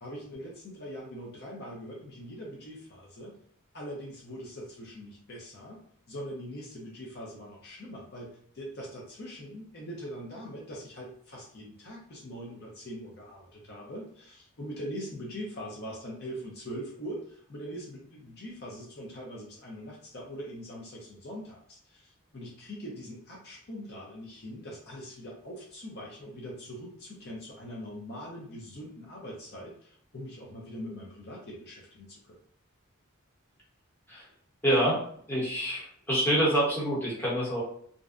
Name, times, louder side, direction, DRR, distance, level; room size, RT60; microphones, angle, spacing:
voice 1, 0.0-3.3 3.7-5.8 6.1-32.4, equal, 50° left, -3 dB, 0.6 m, -42 dB
voice 2, 34.6-35.0 35.3-37.6, right 1 dB, 10° left, -7 dB, 0.9 m, -26 dB
2.5 x 2.1 x 2.4 m, 0.62 s
head